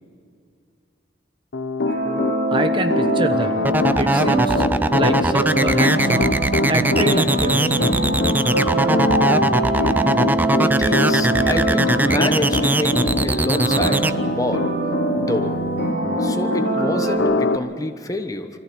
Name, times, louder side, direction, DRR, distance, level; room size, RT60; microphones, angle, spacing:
Piano, 1.5-16.7 17.2-17.6, left 3 dB, 85° left, 0.8 m, -25 dB
sound 1, 1.9-17.2, right 1 dB, 75° right, 5.5 m, -23 dB
voice 1, 2.5-3.6 4.0-4.6 4.9-6.4 6.7-7.8, right 2 dB, 25° right, 8 dB, 1.0 m, -25 dB
sound 2, 3.6-14.1, right 1 dB, 10° right, 0.4 m, -20 dB
voice 2, 10.6-14.7 15.2-15.6 16.2-18.5, left 2 dB, 20° left, 7 dB, 1.1 m, -27 dB
24.5 x 14.5 x 8.6 m, 2.4 s
head